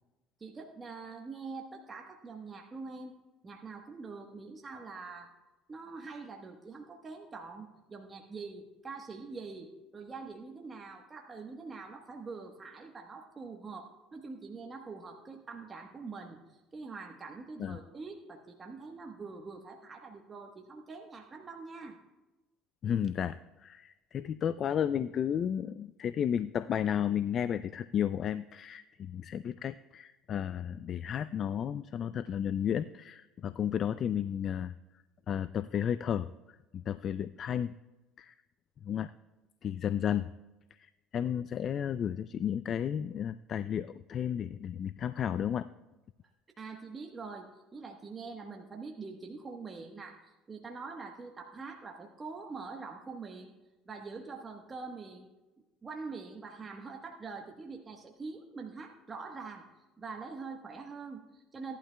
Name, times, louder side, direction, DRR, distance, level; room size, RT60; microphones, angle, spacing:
voice 1, 0.4-3.1 3.4-5.3 5.7-16.4 16.7-22.0 46.6-53.5 53.9-55.3 55.8-59.6 60.0-61.8, right 4 dB, 25° right, 1 dB, 1.2 m, -44 dB
voice 2, 22.8-34.7 35.3-36.3 36.7-37.7 38.2-38.3 38.8-39.1 39.6-40.3 40.8-45.7, left 9 dB, 45° left, 14 dB, 0.3 m, -33 dB
17.5 x 11.5 x 2.2 m, 1.1 s
supercardioid pair, 90°, 0 cm